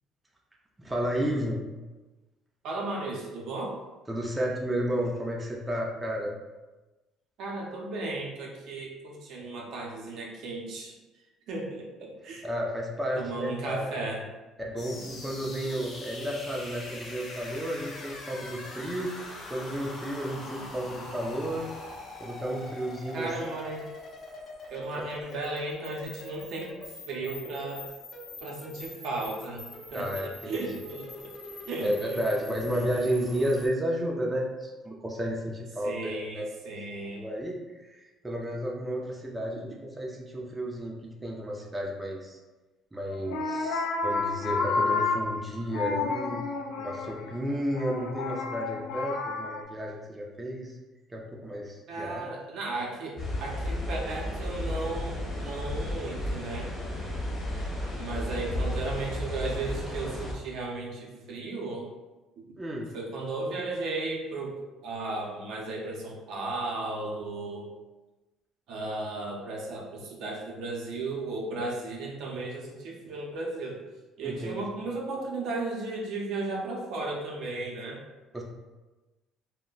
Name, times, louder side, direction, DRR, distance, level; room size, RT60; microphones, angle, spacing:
voice 1, 0.8-1.6 4.1-6.4 12.4-13.9 14.6-19.2 19.5-21.7 22.2-23.3 24.9-25.3 29.9-30.5 31.8-36.5 37.1-42.4 42.9-46.4 46.8-50.8 51.1-52.3 57.7-58.1 62.6-62.9 74.2-74.7 78.3-78.4, equal, 15° right, -2 dB, 0.5 m, -32 dB
voice 2, 2.6-3.8 7.4-10.9 11.5-12.5 13.2-14.3 23.1-23.9 24.7-26.7 27.1-27.8 28.4-29.6 29.9-31.3 31.7-32.2 35.8-37.2 51.9-56.7 58.0-61.9 62.9-64.6 64.8-67.7 68.7-73.8 74.2-78.0, right 2 dB, 65° right, -1 dB, 0.6 m, -35 dB
sound 1, 14.8-33.7, left 2 dB, 45° left, 0.7 m, -43 dB
sound 2, 43.1-49.6, left 4 dB, 90° left, 0.3 m, -31 dB
sound 3, 53.2-60.3, left 1 dB, 30° left, 1.1 m, -33 dB
2.2 x 2.1 x 3.8 m, 1.1 s
supercardioid pair, 90°, 0 cm